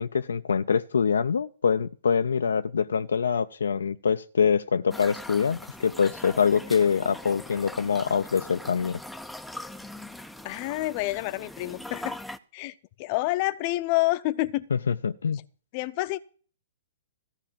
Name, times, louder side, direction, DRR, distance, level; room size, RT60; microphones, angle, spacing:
voice 1, 0.0-9.0 14.7-15.4, left 6 dB, 75° left, 0.5 m, -25 dB
sound 1, 4.9-12.4, left 1 dB, ahead, 0.6 m, -41 dB
voice 2, 10.4-12.2 12.5-14.7 15.7-16.2, left 19 dB, 40° left, 0.7 m, -28 dB
14.5 x 4.9 x 8.6 m
hypercardioid pair, 120°, 0 cm